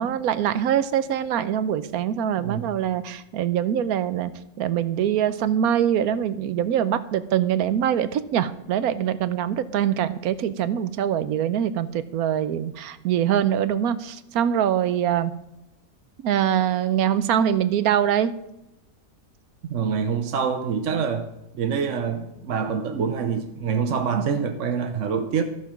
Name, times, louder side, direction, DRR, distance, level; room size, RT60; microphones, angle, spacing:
voice 1, 0.0-4.3 4.6-15.3 16.2-18.3, right 9 dB, 85° right, 14 dB, 1.2 m, -23 dB
voice 2, 2.4-2.7 19.7-21.3 21.5-25.4, right 6 dB, 60° right, 6 dB, 1.1 m, -26 dB
13.0 x 7.0 x 6.0 m, 0.91 s
omnidirectional pair, 1.5 m